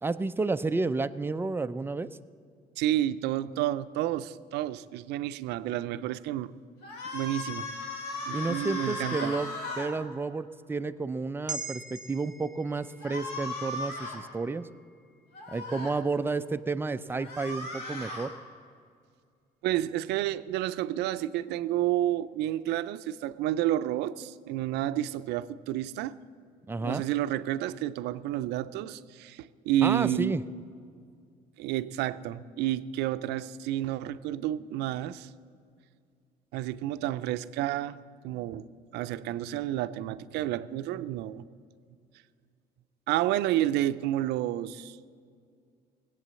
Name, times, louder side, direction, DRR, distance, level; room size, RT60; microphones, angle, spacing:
voice 1, 0.0-2.1 8.3-9.5 9.8-14.7 15.5-18.3 26.7-27.0 29.8-30.4, right 3 dB, 15° right, 11 dB, 0.4 m, -31 dB
voice 2, 2.8-6.5 7.1-7.7 8.2-9.4 19.6-26.1 26.8-30.4 31.6-35.3 36.5-38.0 38.2-41.4 43.1-45.1, right 13 dB, 85° right, 13 dB, 0.5 m, -30 dB
sound 1, 6.8-9.9 13.0-14.2 15.3-15.9 17.1-18.3, left 2 dB, 75° left, 3.3 m, -37 dB
sound 2, 11.5-16.0 16.4-16.5, right 4 dB, 50° right, 0.7 m, -44 dB
18.0 x 8.4 x 7.6 m, 2.2 s
cardioid pair, 110°, 17 cm